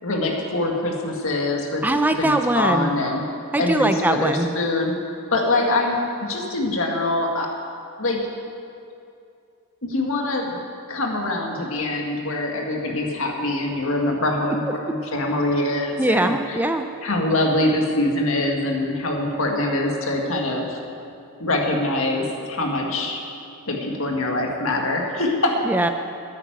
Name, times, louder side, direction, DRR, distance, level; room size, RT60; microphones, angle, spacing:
voice 1, 0.0-1.8 2.1-3.2 3.6-4.9 5.3-7.5 8.0-8.3 9.8-10.6 10.9-14.6 14.9-16.6 17.0-20.8 21.4-23.2 23.7-25.6, left 2 dB, 65° left, 0 dB, 1.9 m, -24 dB
voice 2, 1.8-2.9 3.5-4.5 16.0-16.9 25.7-25.9, right 1 dB, 10° right, 7 dB, 0.4 m, -21 dB
9.6 x 9.4 x 9.4 m, 2.5 s
head